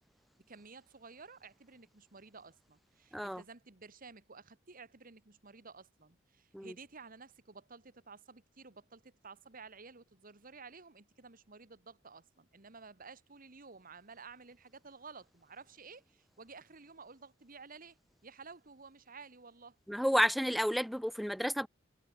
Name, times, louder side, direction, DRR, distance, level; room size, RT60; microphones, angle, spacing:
voice 1, 0.5-18.0 18.2-19.8, right 4 dB, 45° right, 1.7 m, -53 dB
voice 2, 19.9-21.7, equal, ahead, 0.4 m, -31 dB
head